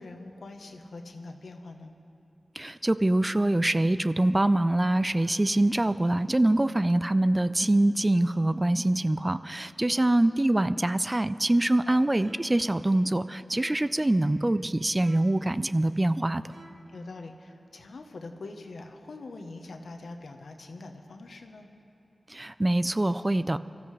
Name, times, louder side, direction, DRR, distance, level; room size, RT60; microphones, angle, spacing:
voice 1, 0.0-1.9 11.9-12.0 16.9-21.7, left 3 dB, 90° left, 4 dB, 1.0 m, -43 dB
voice 2, 2.6-16.4 22.3-23.6, right 1 dB, 20° right, 14 dB, 0.3 m, -24 dB
sound 1, 12.2-12.6 13.5-14.0 15.0-15.5 16.4-17.0, right 2 dB, 65° right, 1.2 m, -53 dB
24.0 x 14.0 x 3.3 m, 2.9 s
wide cardioid pair, 85°, 0 cm